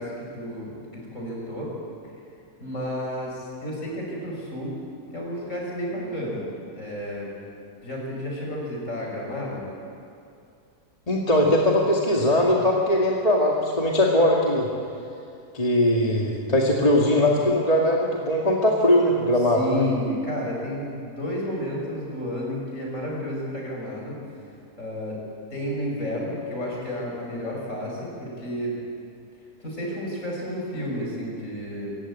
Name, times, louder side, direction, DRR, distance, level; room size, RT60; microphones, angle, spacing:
voice 1, 0.0-1.7 2.6-4.7 5.1-6.5 6.7-7.3 7.8-9.7 19.5-24.2 24.8-25.2 25.5-28.7 29.6-31.9, left 1 dB, 50° left, -3 dB, 6.6 m, -31 dB
voice 2, 11.1-14.7 15.5-19.8, left 1 dB, 25° left, -2 dB, 2.1 m, -20 dB
26.5 x 15.5 x 8.7 m, 2.5 s
omnidirectional pair, 1.7 m